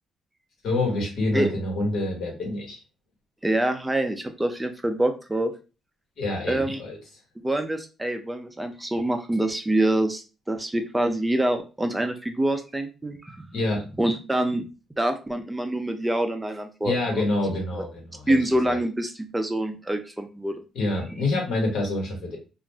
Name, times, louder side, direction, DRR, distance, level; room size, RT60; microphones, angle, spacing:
voice 1, 0.6-2.8 6.2-7.0 13.5-13.8 16.8-18.3 18.6-18.8 20.7-22.4, left 2 dB, 70° left, 0 dB, 1.3 m, -27 dB
voice 2, 3.4-5.5 6.5-6.8 7.4-13.5 14.0-14.6 15.0-16.9 17.7-17.8 18.3-20.6, right 1 dB, 10° right, 6 dB, 0.4 m, -25 dB
2.5 x 2.0 x 3.4 m, 0.31 s
cardioid pair, 90°, 0 cm